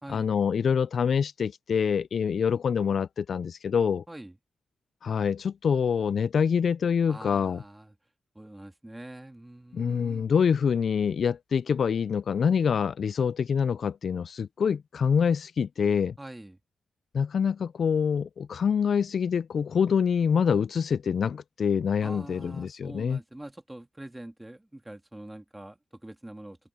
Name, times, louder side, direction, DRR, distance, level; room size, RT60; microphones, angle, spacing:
voice 1, 0.1-4.0 5.0-7.6 9.7-16.1 17.1-23.2, left 7 dB, 55° left, 0.3 m, -26 dB
voice 2, 7.1-7.9 8.4-10.3 16.2-16.6 22.0-26.6, right 1 dB, 10° right, 2.0 m, -44 dB
wide cardioid pair, 145°, 0 cm